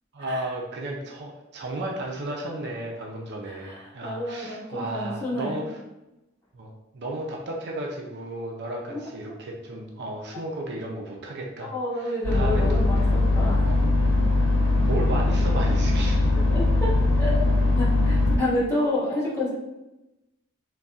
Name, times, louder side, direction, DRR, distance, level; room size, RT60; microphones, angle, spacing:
voice 1, 0.1-5.8 6.5-13.1 13.6-13.8 14.8-16.3, right 1 dB, 55° right, 0 dB, 0.5 m, -34 dB
voice 2, 3.5-5.7 8.9-9.0 11.6-13.7 16.5-16.9 17.2-17.5 17.8-19.5, left 1 dB, 10° left, -9 dB, 1.4 m, -29 dB
sound 1, 12.2-18.4, left 2 dB, 90° left, 0.9 m, -21 dB
4.0 x 2.3 x 3.5 m, 0.96 s
head